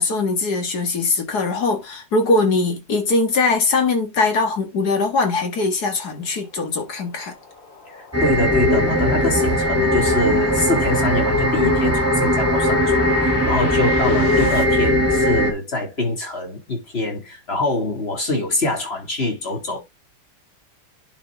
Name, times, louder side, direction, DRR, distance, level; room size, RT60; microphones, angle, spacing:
voice 1, 0.0-7.3, left 3 dB, 60° left, 2.2 m, -21 dB
sound 1, 6.0-14.6, left 4 dB, 85° left, 3.1 m, -33 dB
voice 2, 7.9-19.8, left 2 dB, 35° left, 2.4 m, -24 dB
sound 2, 8.1-15.5, equal, 10° right, 1.9 m, -19 dB
10.5 x 4.4 x 3.4 m
omnidirectional pair, 2.0 m